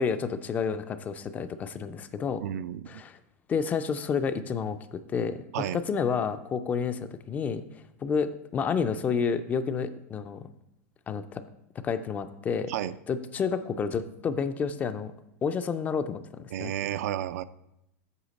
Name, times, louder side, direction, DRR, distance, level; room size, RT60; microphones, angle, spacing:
voice 1, 0.0-2.4 2.9-3.2 3.5-5.4 5.7-10.4 11.1-11.4 11.8-12.7 13.1-15.1 15.4-16.7, left 6 dB, 20° left, 11 dB, 0.3 m, -30 dB
voice 2, 2.4-3.0 5.5-5.8 12.7-13.0 16.5-17.4, right 11 dB, 75° right, 14 dB, 0.4 m, -32 dB
8.2 x 5.6 x 4.0 m, 0.83 s
supercardioid pair, 150°, 8 cm